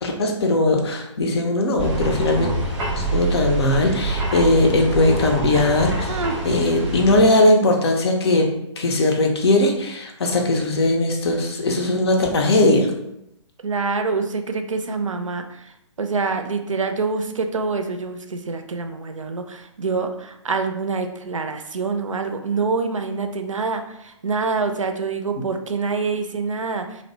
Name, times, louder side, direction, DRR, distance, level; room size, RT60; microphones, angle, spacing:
voice 1, 0.0-2.5 2.9-12.9, left 2 dB, 55° left, 2 dB, 0.6 m, -19 dB
sound 1, 1.8-7.2, right 2 dB, 5° right, 0.4 m, -26 dB
voice 2, 13.6-15.7 16.0-27.0, right 4 dB, 85° right, 6 dB, 0.4 m, -26 dB
2.7 x 2.0 x 3.1 m, 0.79 s
figure-of-eight pair, 130°, 16 cm